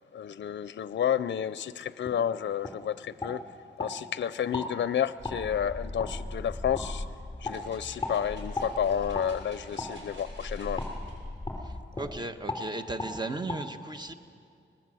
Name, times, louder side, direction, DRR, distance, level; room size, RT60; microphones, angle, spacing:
voice 1, 0.1-3.4 3.8-7.1 7.4-10.8, left 9 dB, 70° left, 15 dB, 0.5 m, -30 dB
sound 1, 2.0-2.2 2.6-2.8 3.2-3.9 4.5-4.7 5.2-5.4 6.0-6.1 6.7-6.9 7.4-7.6 8.0-8.2 8.5-8.7 9.1-9.3 9.8-9.9 10.8-10.9 11.5-11.6 11.9-12.1 12.5-12.6 13.0-13.1 13.5-13.6, left 3 dB, 20° left, 4.2 m, -35 dB
sound 2, 5.2-12.2, left 1 dB, 5° left, 3.2 m, -40 dB
sound 3, 7.5-11.1 11.7-11.8, right 1 dB, 85° right, 6.7 m, -52 dB
voice 2, 11.6-14.1, right 2 dB, 20° right, 8 dB, 1.1 m, -36 dB
25.0 x 19.5 x 7.7 m, 2.4 s
wide cardioid pair, 125°, 19 cm